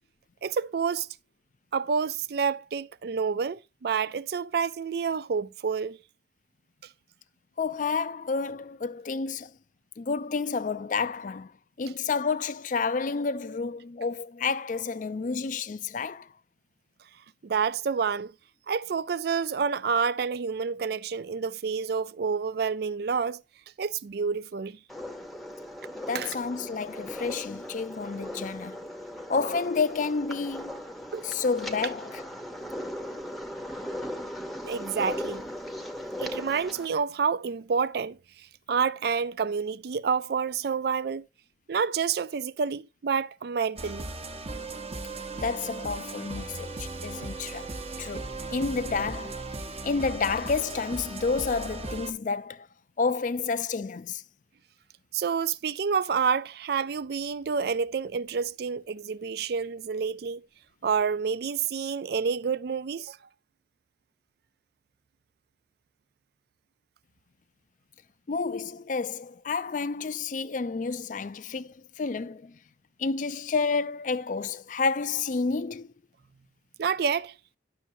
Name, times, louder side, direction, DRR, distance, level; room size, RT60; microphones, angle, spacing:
voice 1, 0.4-1.1 1.7-6.0 17.4-18.3 18.7-23.4 23.8-24.8 26.1-26.4 31.1-31.3 34.6-35.4 36.2-38.2 38.7-41.3 41.7-44.1 55.1-60.4 60.8-63.2 76.8-77.3, right 6 dB, 60° right, 0.4 m, -28 dB
voice 2, 7.6-9.5 10.0-11.5 11.8-16.3 26.1-28.8 29.3-30.8 31.2-32.2 45.4-47.7 48.0-49.4 49.8-52.7 53.0-54.2 68.3-72.5 73.0-75.9, left 4 dB, 45° left, 0.4 m, -30 dB
sound 1, 24.9-36.9, left 1 dB, ahead, 0.8 m, -38 dB
sound 2, 43.8-52.1, right 2 dB, 35° right, 0.9 m, -37 dB
11.0 x 6.4 x 2.6 m
head